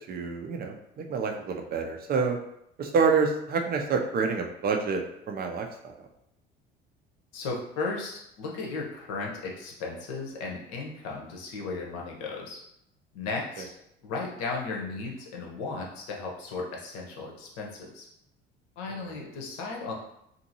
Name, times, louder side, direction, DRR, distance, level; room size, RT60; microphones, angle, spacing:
voice 1, 0.0-2.4 2.8-5.7 19.0-19.2, right 5 dB, 30° right, 3 dB, 0.5 m, -27 dB
voice 2, 7.3-12.6 13.1-13.7 14.0-18.1 18.8-19.9, left 3 dB, 55° left, 0 dB, 0.8 m, -35 dB
2.7 x 2.5 x 2.8 m, 0.78 s
figure-of-eight pair, 60°, 29 cm